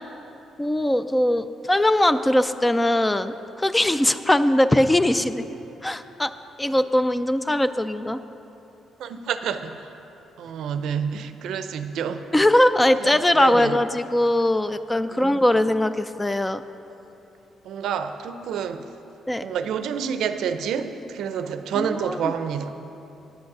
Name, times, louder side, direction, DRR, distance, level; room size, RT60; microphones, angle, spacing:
voice 1, 0.6-6.3 6.6-8.2 12.3-16.6 19.3-19.5 21.8-22.2, left 1 dB, 15° left, 12 dB, 0.3 m, -21 dB
voice 2, 9.0-9.9 10.4-12.3 13.0-13.1 13.4-13.8 15.1-15.3 17.6-18.9 19.4-22.7, right 7 dB, 80° right, 9 dB, 0.5 m, -28 dB
9.2 x 7.9 x 6.0 m, 2.9 s
cardioid pair, 90°, 0 cm